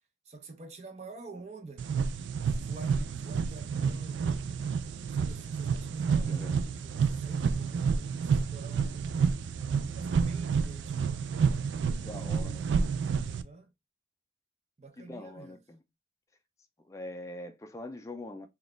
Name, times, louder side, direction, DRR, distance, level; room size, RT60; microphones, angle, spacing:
voice 1, 0.3-1.9 2.5-4.4 5.1-11.2 12.1-13.7 14.8-15.6, right 3 dB, 35° right, 0.6 m, -48 dB
sound 1, 1.8-13.4, right 6 dB, 85° right, 0.3 m, -30 dB
voice 2, 6.3-6.6 11.9-12.9 15.0-15.8 16.9-18.5, left 1 dB, 15° left, 0.3 m, -43 dB
4.0 x 2.3 x 3.6 m
head